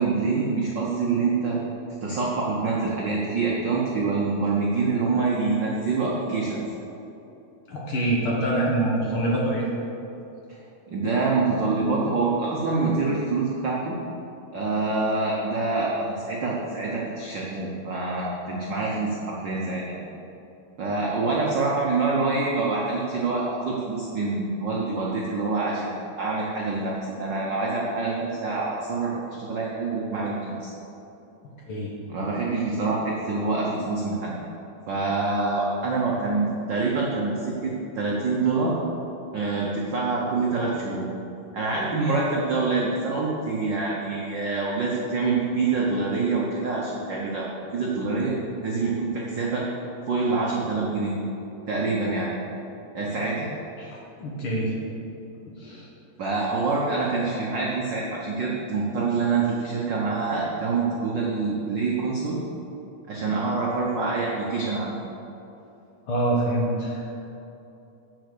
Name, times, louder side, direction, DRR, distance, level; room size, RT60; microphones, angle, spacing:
voice 1, 0.0-1.6 2.0-6.6 10.9-13.9 14.5-19.8 20.8-26.9 27.2-30.7 32.1-34.3 34.9-38.7 39.3-41.1 41.5-48.3 48.6-49.6 50.1-51.2 51.7-52.3 52.9-53.5 56.2-62.4 63.1-65.0, right 3 dB, 65° right, -4 dB, 1.1 m, -26 dB
voice 2, 7.7-9.7 31.6-31.9 48.1-48.2 53.8-54.7 55.5-55.9 66.1-67.3, right 1 dB, 50° left, -4 dB, 1.9 m, -26 dB
8.1 x 7.3 x 6.8 m, 2.9 s
omnidirectional pair, 3.5 m